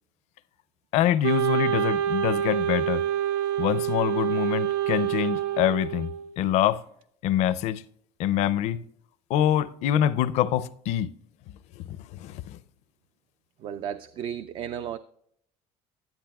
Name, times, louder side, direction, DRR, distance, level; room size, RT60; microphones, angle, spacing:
voice 1, 0.9-3.0 3.6-6.1 6.4-6.8 7.2-7.8 8.2-8.8 9.3-11.1 11.8-12.6, left 11 dB, 65° left, 0.5 m, -25 dB
Wind instrument woodwind instrument, 1.2-6.3, right 11 dB, 90° right, 0.6 m, -27 dB
voice 2, 13.6-15.0, right 9 dB, 45° right, 0.3 m, -34 dB
12.0 x 10.5 x 2.3 m
cardioid pair, 130°, 12 cm